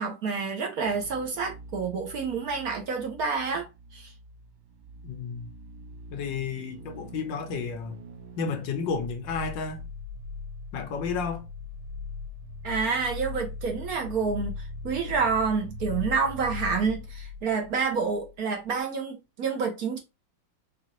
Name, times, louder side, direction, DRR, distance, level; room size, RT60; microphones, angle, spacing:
voice 1, 0.0-4.1 12.6-20.0, right 5 dB, 60° right, 1.1 m, -28 dB
sound 1, 0.8-18.4 18.6-18.7, left 3 dB, 90° right, 1.4 m, -41 dB
voice 2, 5.0-5.5 6.1-7.9 8.4-9.9 10.7-11.5, left 5 dB, 75° left, 1.4 m, -32 dB
4.7 x 2.5 x 3.0 m
omnidirectional pair, 2.1 m